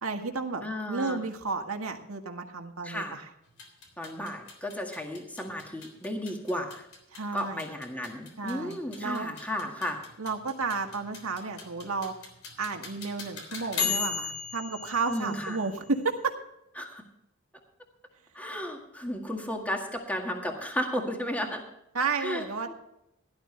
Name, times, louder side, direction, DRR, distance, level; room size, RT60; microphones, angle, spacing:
voice 1, 0.0-3.3 7.1-7.7 8.4-9.3 10.2-12.1 12.6-16.3 21.9-22.7, right 4 dB, 85° right, 4 dB, 1.8 m, -32 dB
voice 2, 0.6-1.2 2.8-3.2 4.0-6.9 7.3-10.0 15.1-15.6 16.8-17.0 18.3-21.6 22.2-22.7, equal, 5° left, 2 dB, 1.8 m, -34 dB
sound 1, 3.5-16.2, left 5 dB, 80° left, 3.5 m, -38 dB
17.0 x 11.5 x 3.3 m, 0.83 s
head